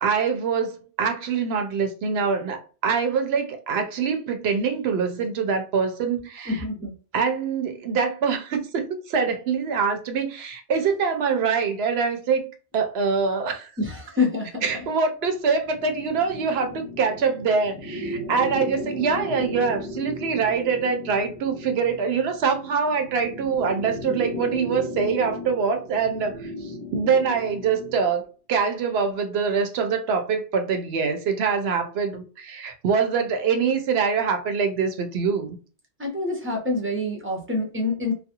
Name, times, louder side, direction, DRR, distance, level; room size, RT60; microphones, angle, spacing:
voice 1, 0.0-6.5 7.1-13.7 14.6-26.3 26.6-35.6, right 5 dB, 70° right, 0.8 m, -24 dB
voice 2, 6.5-6.9 13.8-14.6 36.0-38.1, left 3 dB, 15° right, 0.6 m, -26 dB
sound 1, 15.6-28.1, left 1 dB, 50° left, 0.7 m, -36 dB
2.4 x 2.2 x 2.8 m
omnidirectional pair, 1.2 m